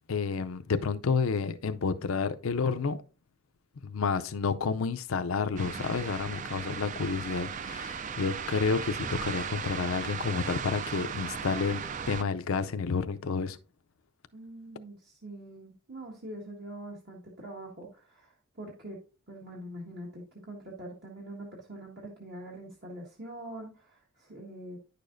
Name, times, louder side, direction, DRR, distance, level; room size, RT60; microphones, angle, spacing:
voice 1, 0.1-3.0 3.8-13.6, left 5 dB, 85° left, 0.5 m, -30 dB
sound 1, 5.6-12.2, right 6 dB, 40° right, 0.4 m, -37 dB
voice 2, 14.3-19.0 19.3-24.8, right 1 dB, 55° right, 1.6 m, -44 dB
9.9 x 6.7 x 2.6 m
head